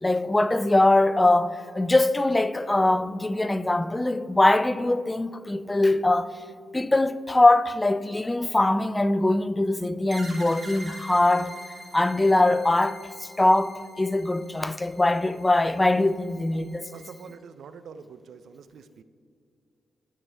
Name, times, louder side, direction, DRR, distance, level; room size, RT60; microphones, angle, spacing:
voice 1, 0.0-6.4 6.7-11.6 11.9-16.9, left 2 dB, 20° left, 0.3 m, -22 dB
sound 1, 10.1-17.3, right 1 dB, 40° right, 1.4 m, -45 dB
voice 2, 16.9-19.0, right 6 dB, 70° right, 0.4 m, -45 dB
12.0 x 9.4 x 2.2 m
supercardioid pair, 55°, 0 cm